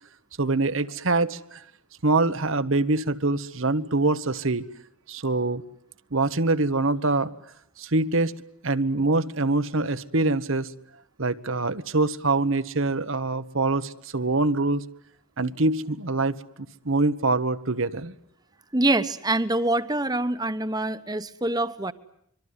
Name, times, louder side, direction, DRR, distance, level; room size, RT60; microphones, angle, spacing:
voice 1, 0.4-1.6 2.0-4.6 5.1-5.6 6.1-7.3 7.8-8.3 8.6-10.7 11.2-14.8 15.4-16.4 16.8-18.1, right 3 dB, 65° right, 12 dB, 1.2 m, -24 dB
voice 2, 18.7-21.9, right 2 dB, 20° right, 13 dB, 1.1 m, -25 dB
25.0 x 24.0 x 9.8 m, 0.69 s
head